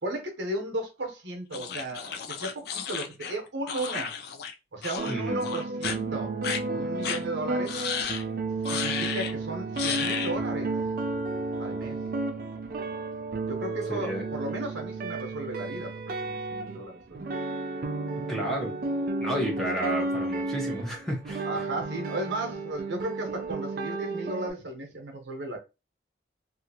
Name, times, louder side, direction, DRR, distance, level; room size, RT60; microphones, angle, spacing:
voice 1, 0.0-4.1 4.7-6.3 6.7-7.8 8.7-10.7 11.6-12.0 13.4-17.3 21.4-25.6, right 2 dB, 70° right, 0.8 m, -35 dB
sound 1, 1.5-4.5 4.8-5.1 5.4-6.0 6.4-6.6 7.0-7.2 7.7-8.2 8.6-9.3 9.8-10.3, left 7 dB, 55° left, 0.3 m, -33 dB
sound 2, 5.0-24.5, right 3 dB, 50° right, 0.4 m, -32 dB
voice 2, 5.1-5.4 13.9-14.2 18.3-18.7 19.2-21.5, equal, ahead, 0.7 m, -31 dB
2.7 x 2.5 x 2.7 m
head